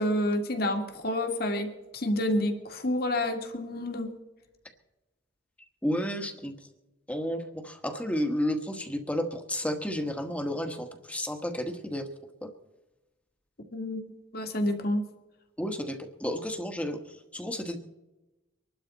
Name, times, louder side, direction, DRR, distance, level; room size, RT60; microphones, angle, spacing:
voice 1, 0.0-4.1 13.7-15.0, left 1 dB, 50° left, 5 dB, 2.0 m, -29 dB
voice 2, 5.8-6.5 7.1-12.1 12.4-12.5 15.6-17.8, equal, 5° left, 6 dB, 1.3 m, -32 dB
24.5 x 12.0 x 4.0 m, 1.0 s
head